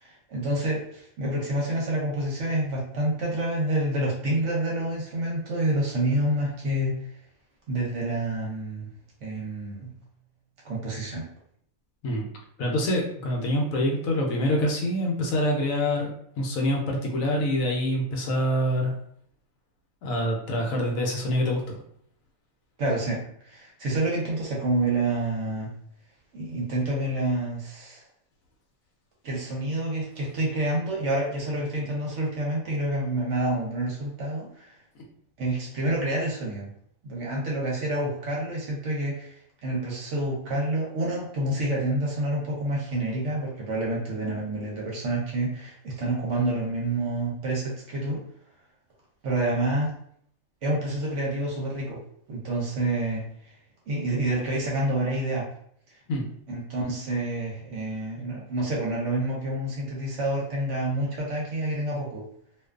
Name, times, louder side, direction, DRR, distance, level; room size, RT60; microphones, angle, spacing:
voice 1, 0.0-6.9 7.7-8.9 9.2-9.9 10.6-11.3 22.8-25.7 26.3-28.0 29.2-34.7 35.4-36.7 37.0-48.2 49.2-49.9 50.6-52.0 52.3-53.2 53.9-55.5 56.5-62.2, right 1 dB, 60° right, -3 dB, 0.9 m, -28 dB
voice 2, 12.6-16.1 16.4-18.9 20.0-21.8 56.1-56.3, equal, 75° left, 0 dB, 1.0 m, -25 dB
2.5 x 2.3 x 2.3 m, 0.64 s
omnidirectional pair, 1.5 m